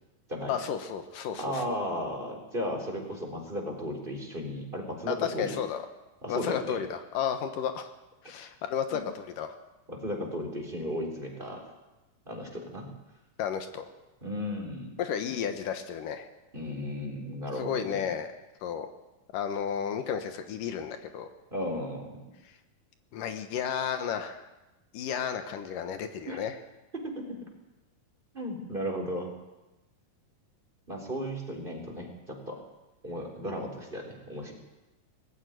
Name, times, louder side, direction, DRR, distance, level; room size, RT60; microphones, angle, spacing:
voice 1, 0.5-1.8 5.1-5.9 6.3-7.9 8.2-9.6 13.4-13.8 15.0-16.3 17.6-18.3 18.6-18.9 19.3-21.3 23.1-24.4 24.9-26.6, left 8 dB, 75° left, 7 dB, 2.8 m, -32 dB
voice 2, 1.3-5.6 6.2-6.8 8.9-9.0 9.9-11.6 12.3-12.9 14.2-15.0 16.5-18.1 21.5-22.3 26.3-26.4 26.9-27.4 28.3-29.3 30.9-32.6 33.0-34.5, equal, 15° right, 2 dB, 3.9 m, -35 dB
20.0 x 15.0 x 9.5 m, 1.0 s
omnidirectional pair, 3.9 m